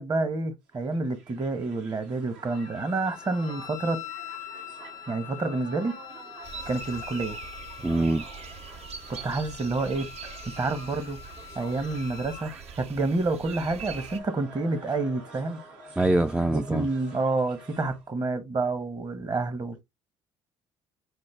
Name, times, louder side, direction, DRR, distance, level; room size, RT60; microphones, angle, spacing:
voice 1, 0.0-4.0 5.1-5.9 6.7-7.4 9.1-10.1 10.6-11.2 11.5-15.6 16.5-19.8, right 3 dB, 35° right, 1.1 m, -28 dB
Crowd, 0.7-18.1, right 2 dB, 80° right, 1.7 m, -48 dB
Wind instrument woodwind instrument, 2.5-12.5, left 12 dB, 80° left, 0.6 m, -44 dB
sound 1, 6.4-14.2, right 6 dB, 60° right, 0.6 m, -43 dB
voice 2, 7.8-8.3 16.0-16.9, right 2 dB, 10° right, 0.3 m, -24 dB
5.1 x 2.2 x 3.1 m
supercardioid pair, 70°, 12 cm